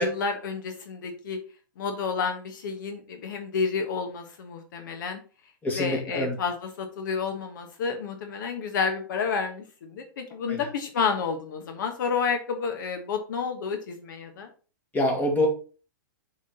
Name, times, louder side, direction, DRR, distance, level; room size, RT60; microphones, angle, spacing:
voice 1, 0.0-1.4 1.8-5.2 5.7-14.5, left 5 dB, 65° left, 5 dB, 1.3 m, -30 dB
voice 2, 5.6-6.4 10.5-10.6 14.9-15.5, left 1 dB, 15° left, 0 dB, 2.1 m, -25 dB
7.4 x 3.7 x 4.2 m, 0.36 s
hypercardioid pair, 125°, 11 cm